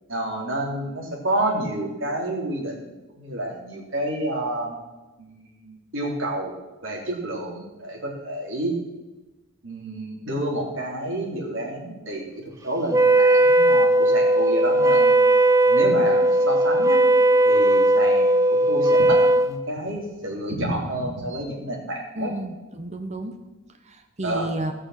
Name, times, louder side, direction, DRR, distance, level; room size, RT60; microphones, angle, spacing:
voice 1, 0.1-4.7 5.2-6.5 6.8-8.8 9.6-15.1 15.6-17.0 17.4-22.3 24.2-24.5, right 1 dB, 65° right, -2 dB, 3.3 m, -29 dB
Wind instrument woodwind instrument, 12.9-19.5, right 1 dB, 15° right, 0.5 m, -17 dB
voice 2, 22.2-23.4 23.8-24.7, right 1 dB, 30° right, 7 dB, 0.8 m, -31 dB
16.5 x 6.2 x 6.4 m, 1.1 s
head